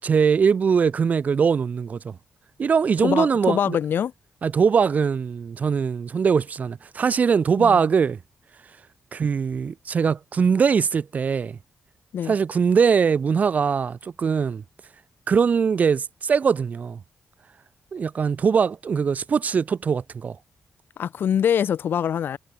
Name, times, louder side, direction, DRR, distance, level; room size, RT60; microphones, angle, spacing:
voice 1, 0.0-2.2 2.6-3.8 4.4-8.2 9.1-11.6 12.2-14.6 15.3-17.0 17.9-20.4, right 6 dB, 40° right, 0.6 m, -21 dB
voice 2, 3.0-4.1 7.6-7.8 12.1-12.3 21.0-22.4, left 8 dB, 65° left, 0.8 m, -24 dB
wide cardioid pair, 135°, 4 cm